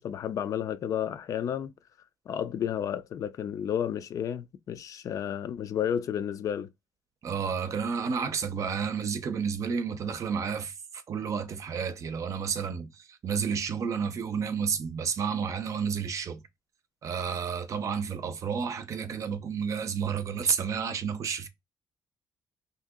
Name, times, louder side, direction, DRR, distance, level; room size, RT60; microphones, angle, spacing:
voice 1, 0.0-1.7 2.3-6.7, left 9 dB, 55° left, 0.4 m, -31 dB
voice 2, 7.2-10.7 11.1-16.4 17.0-21.5, right 6 dB, 50° right, 0.6 m, -31 dB
2.8 x 2.7 x 3.6 m
cardioid pair, 125°, 7 cm